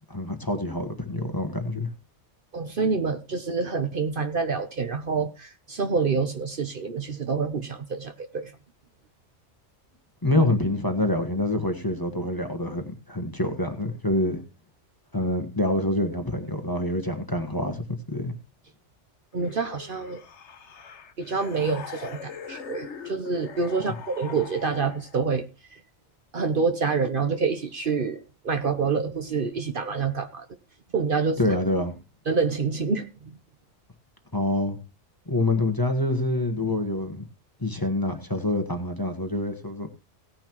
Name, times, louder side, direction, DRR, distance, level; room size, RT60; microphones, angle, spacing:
voice 1, 0.1-1.9 10.2-14.4 15.1-18.3 31.4-31.9 34.3-34.8 35.3-37.2 37.6-39.9, left 1 dB, 20° left, 5 dB, 1.3 m, -26 dB
voice 2, 2.5-8.5 19.3-20.2 21.2-25.4 26.3-30.4 30.9-31.4 32.3-33.1, right 5 dB, 50° right, 8 dB, 1.0 m, -27 dB
sound 1, 19.4-25.2, left 6 dB, 75° left, 1.3 m, -42 dB
17.0 x 9.9 x 3.0 m, 0.30 s
omnidirectional pair, 1.2 m